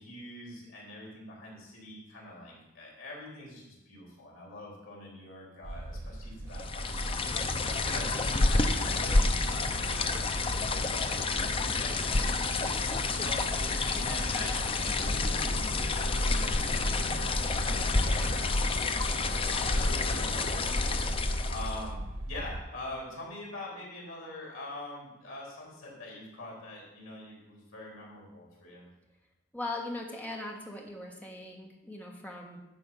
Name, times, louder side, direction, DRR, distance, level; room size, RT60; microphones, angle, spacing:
voice 1, 0.0-7.4 7.8-12.8 13.1-19.0 19.4-21.0 21.5-28.9, left 1 dB, 85° left, -3 dB, 3.7 m, -44 dB
sound 1, 5.6-22.6, right 1 dB, 90° right, 1.0 m, -40 dB
sound 2, 6.5-21.9, left 3 dB, 25° left, 0.5 m, -29 dB
voice 2, 29.5-32.6, left 2 dB, 10° left, 0 dB, 1.3 m, -39 dB
10.5 x 4.5 x 7.0 m, 1.0 s
head